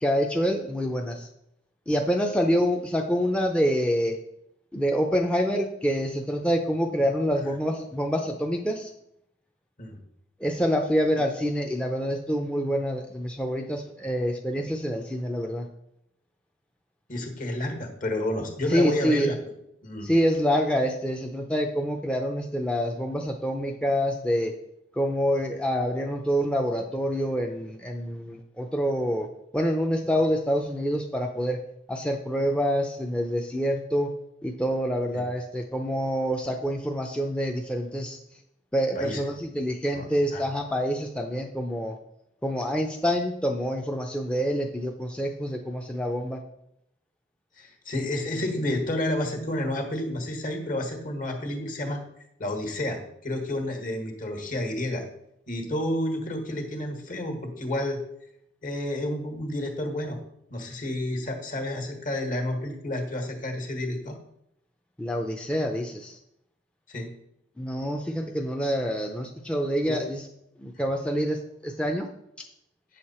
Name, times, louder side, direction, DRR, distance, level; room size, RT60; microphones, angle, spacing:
voice 1, 0.0-1.3 1.9-4.2 4.7-8.9 10.4-15.7 18.7-19.3 20.0-24.5 24.9-29.3 29.5-31.6 31.9-34.1 34.4-38.2 38.7-42.0 42.4-46.4 65.0-66.2 67.6-70.2 70.6-72.1, equal, 5° left, 2 dB, 0.5 m, -26 dB
voice 2, 17.1-19.4 19.8-20.1 35.1-35.2 38.9-39.2 39.9-40.4 47.6-52.0 52.4-55.0 55.5-58.0 58.6-60.2 60.5-64.2 66.9-67.1 69.9-70.0, left 1 dB, 50° left, 4 dB, 1.6 m, -30 dB
8.5 x 6.5 x 4.3 m, 0.79 s
head